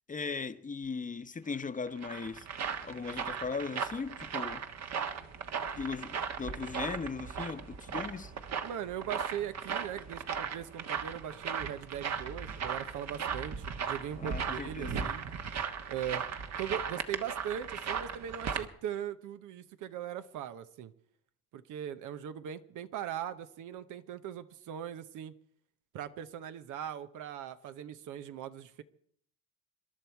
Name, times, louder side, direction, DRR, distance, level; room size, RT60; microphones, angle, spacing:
voice 1, 0.1-2.5 2.8-4.7 5.8-8.3 14.2-15.1, left 5 dB, 25° left, 0.8 m, -38 dB
sound 1, 1.6-18.7, right 6 dB, 60° right, 1.4 m, -37 dB
voice 2, 8.6-15.2 15.9-16.2 16.6-20.9 21.5-25.3 25.9-28.8, right 10 dB, 90° right, 1.0 m, -40 dB
26.5 x 11.5 x 4.6 m
cardioid pair, 90°, 30 cm